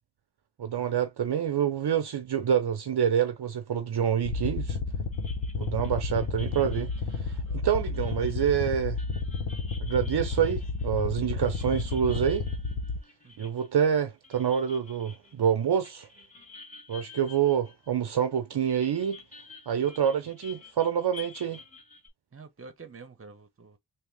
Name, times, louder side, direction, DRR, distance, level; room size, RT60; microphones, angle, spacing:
voice 1, 0.6-4.8 5.6-6.9 7.2-9.0 9.8-12.4 13.4-16.1 16.9-19.2 19.7-21.6, right 8 dB, 60° right, 0.8 m, -27 dB
sound 1, 4.2-13.0, left 4 dB, 85° left, 1.2 m, -32 dB
sound 2, 5.1-18.3 18.6-22.1, left 4 dB, 15° left, 2.2 m, -51 dB
voice 2, 22.3-23.8, right 4 dB, 30° right, 1.0 m, -48 dB
3.6 x 2.7 x 3.4 m
cardioid pair, 65°, 46 cm